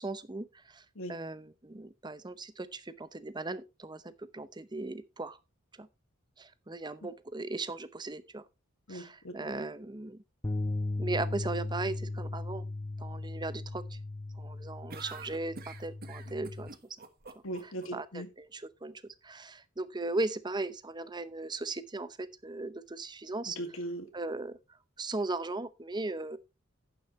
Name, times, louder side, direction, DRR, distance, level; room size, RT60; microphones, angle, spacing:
voice 1, 0.0-5.4 5.8-5.9 6.4-8.4 8.9-10.2 11.0-12.6 13.0-14.0 14.3-16.7 17.9-23.6 24.1-24.6 25.0-26.4, right 2 dB, 20° right, 0.7 m, -38 dB
voice 2, 8.9-9.4 17.4-18.3 23.5-24.1, right 1 dB, 70° left, 2.1 m, -39 dB
sound 1, 10.4-16.7, left 2 dB, 15° left, 0.6 m, -37 dB
sound 2, 14.9-17.9, right 4 dB, 45° right, 1.5 m, -47 dB
11.0 x 9.6 x 3.1 m
head